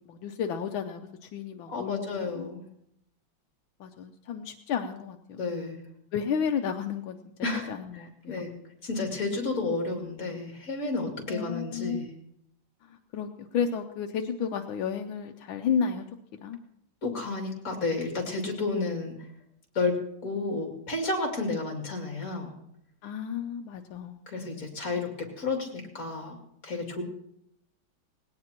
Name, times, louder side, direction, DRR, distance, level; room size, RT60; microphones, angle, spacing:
voice 1, 0.1-2.5 3.8-5.4 6.1-7.2 7.7-8.4 11.3-12.0 12.9-16.0 16.4-16.6 23.0-24.2, left 7 dB, 85° left, 5 dB, 1.5 m, -32 dB
voice 2, 1.7-2.6 5.3-5.8 7.4-8.5 8.8-12.1 17.0-19.1 19.7-22.5 24.3-26.3 26.6-27.0, left 3 dB, 45° left, 1 dB, 3.1 m, -31 dB
19.5 x 17.5 x 2.9 m, 0.76 s
omnidirectional pair, 2.1 m